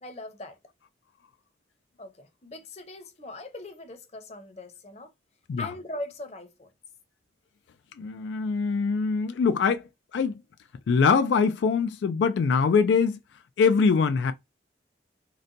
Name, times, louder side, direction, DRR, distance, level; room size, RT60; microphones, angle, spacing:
voice 1, 0.0-0.6 2.0-5.1 5.6-6.7, left 2 dB, 35° left, 0.7 m, -40 dB
voice 2, 8.0-9.8 10.1-10.4 10.9-13.2 13.6-14.3, left 5 dB, 85° left, 0.3 m, -23 dB
3.9 x 2.2 x 2.5 m
head